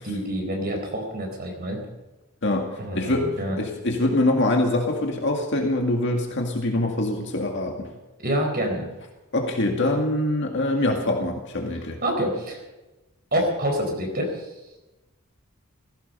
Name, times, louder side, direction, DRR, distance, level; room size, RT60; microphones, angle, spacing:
voice 1, 0.0-1.8 2.8-3.6 8.2-8.9 12.0-12.6 13.3-14.5, equal, 45° right, 2 dB, 4.3 m, -27 dB
voice 2, 2.9-3.3 3.6-7.9 9.3-12.0, left 1 dB, 55° left, 2 dB, 2.0 m, -24 dB
16.0 x 15.5 x 5.5 m, 1.0 s
head